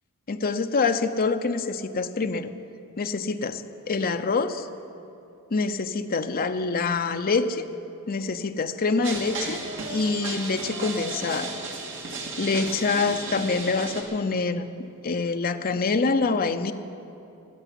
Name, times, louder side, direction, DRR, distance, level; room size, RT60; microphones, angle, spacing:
voice 1, 0.3-2.5 3.0-4.7 5.5-7.6 8.1-11.5 12.4-14.7 15.0-16.7, left 4 dB, 40° left, 7 dB, 0.6 m, -26 dB
sound 1, 9.0-14.0, right 3 dB, 60° right, 2.3 m, -34 dB
16.0 x 8.1 x 9.8 m, 2.9 s
head